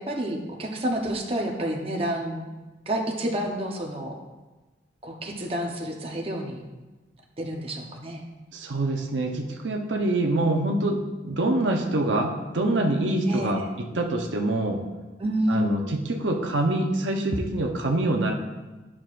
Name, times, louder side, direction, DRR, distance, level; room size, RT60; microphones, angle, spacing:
voice 1, 0.0-2.5 2.9-4.1 5.0-6.6 7.4-8.2 13.3-13.7 15.2-15.7, right 1 dB, 30° right, 0 dB, 0.8 m, -29 dB
voice 2, 8.5-14.8 15.5-18.3, right 2 dB, 80° right, 2 dB, 0.8 m, -25 dB
11.0 x 6.1 x 2.5 m, 1.2 s
head